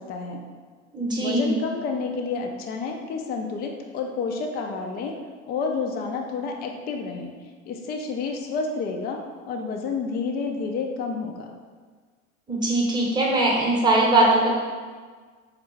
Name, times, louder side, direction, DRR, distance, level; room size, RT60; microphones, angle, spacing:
voice 1, 0.1-0.4 1.2-5.1 5.5-7.3 7.7-9.2 9.5-11.5, left 4 dB, 25° left, 3 dB, 0.4 m, -29 dB
voice 2, 0.9-1.5 12.5-14.5, right 2 dB, 10° right, -3 dB, 0.9 m, -21 dB
3.6 x 3.2 x 3.1 m, 1.5 s
hypercardioid pair, 100°, 38 cm